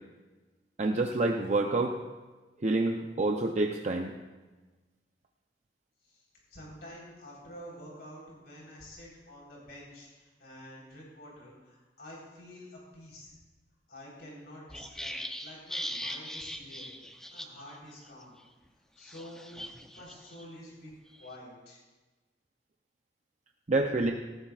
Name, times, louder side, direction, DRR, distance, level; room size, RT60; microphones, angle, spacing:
voice 1, 0.8-2.0 2.6-4.1 23.7-24.1, right 2 dB, 40° right, 3 dB, 0.7 m, -27 dB
voice 2, 6.0-13.4 13.9-16.9 17.3-18.4 19.0-21.8, left 1 dB, 65° left, -4 dB, 4.1 m, -49 dB
sound 1, 14.7-17.8 18.0-18.2 19.0-20.5 20.9-21.3, equal, 5° left, 0.7 m, -40 dB
18.0 x 14.5 x 2.5 m, 1.2 s
head